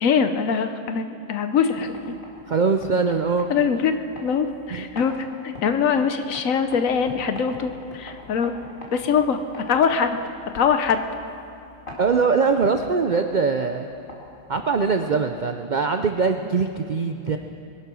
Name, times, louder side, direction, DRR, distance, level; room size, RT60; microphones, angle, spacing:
voice 1, 0.0-2.2 3.5-5.1 5.4-8.5 8.9-10.2 10.5-11.0, left 6 dB, 70° left, 8 dB, 1.2 m, -23 dB
sound 1, 1.6-15.4, left 1 dB, 35° left, 2.7 m, -43 dB
voice 2, 2.5-3.5 4.7-4.9 12.0-13.9 14.5-17.4, right 5 dB, 60° right, 6 dB, 0.4 m, -22 dB
21.5 x 10.5 x 6.2 m, 2.6 s
omnidirectional pair, 1.5 m